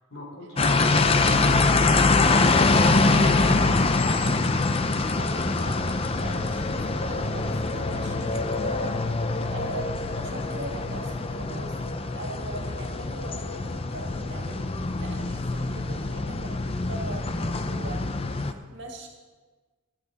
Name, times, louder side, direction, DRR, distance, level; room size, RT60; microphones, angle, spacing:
voice 1, 0.1-4.4, left 1 dB, 70° left, -1 dB, 3.6 m, -42 dB
sound 1, 0.6-18.5, left 3 dB, 25° left, 0.5 m, -24 dB
voice 2, 5.0-9.0 9.5-11.8 12.1-18.0 18.4-19.1, right 2 dB, 60° right, 1 dB, 2.1 m, -40 dB
13.5 x 11.5 x 4.1 m, 1.4 s
head